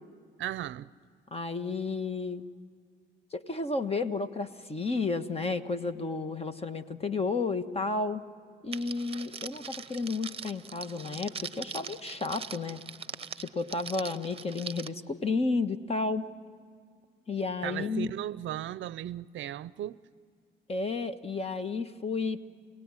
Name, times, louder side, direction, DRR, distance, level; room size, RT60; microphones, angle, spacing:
voice 1, 0.4-0.9 17.6-20.0, right 12 dB, 70° right, 0.6 m, -36 dB
voice 2, 1.3-2.4 3.3-8.2 8.6-12.8 13.4-16.3 17.3-18.1 20.7-22.5, left 3 dB, 30° left, 1.4 m, -32 dB
Crackle, 8.7-14.9, right 6 dB, 30° right, 0.9 m, -42 dB
28.5 x 19.0 x 9.8 m
cardioid pair, 90°, 20 cm